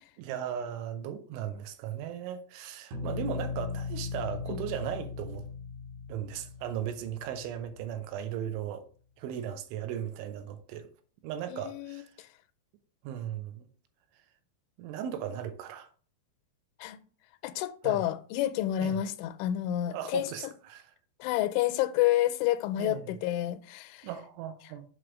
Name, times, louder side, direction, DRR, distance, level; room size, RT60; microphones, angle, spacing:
voice 1, 0.2-5.5 6.1-8.9 9.2-10.9 11.2-12.1 13.0-13.7 14.8-15.9 17.8-18.0 18.8-19.0 19.9-20.9 22.8-23.2 24.0-24.8, right 9 dB, 85° right, 3.1 m, -37 dB
sound 1, 2.9-7.8, left 5 dB, 65° right, 2.7 m, -38 dB
voice 2, 11.5-12.0 16.8-17.0 17.4-20.5 21.2-24.1, left 13 dB, 85° left, 3.0 m, -29 dB
7.7 x 3.2 x 6.1 m
omnidirectional pair, 5.4 m